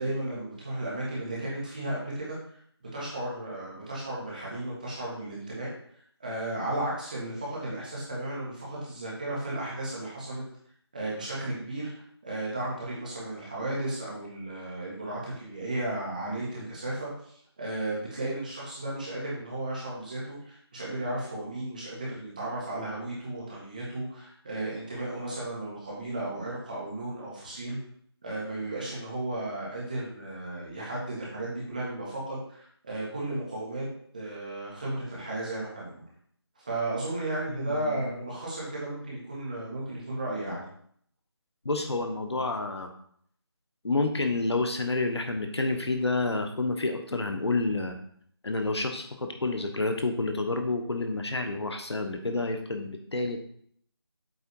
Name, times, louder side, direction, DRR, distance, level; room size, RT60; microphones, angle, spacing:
voice 1, 0.0-2.4 2.9-5.7 6.2-10.4 10.9-11.9 12.2-27.8 28.2-33.8 34.1-36.1 36.6-40.6, right 1 dB, 20° right, -6 dB, 1.7 m, -34 dB
voice 2, 37.5-38.1 41.6-42.9 43.8-48.0 48.4-53.5, left 2 dB, 80° left, 5 dB, 1.4 m, -29 dB
8.0 x 3.8 x 4.7 m, 0.63 s
figure-of-eight pair, 180°, 14 cm